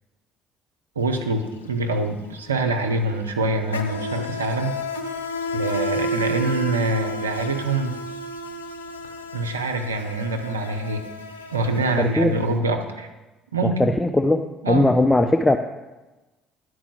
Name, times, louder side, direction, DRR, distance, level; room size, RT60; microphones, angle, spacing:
Insect, 1.0-1.2 1.5-12.5, left 1 dB, 90° left, 0.5 m, -31 dB
voice 1, 1.0-4.8 5.5-7.9 9.3-11.0 11.5-13.1 13.5-13.9 14.6-14.9, right 2 dB, 90° right, 5 dB, 0.6 m, -25 dB
voice 2, 12.0-12.4 13.6-15.6, left 2 dB, 10° left, 6 dB, 0.5 m, -19 dB
10.0 x 4.7 x 6.2 m, 1.1 s
figure-of-eight pair, 55°, 0 cm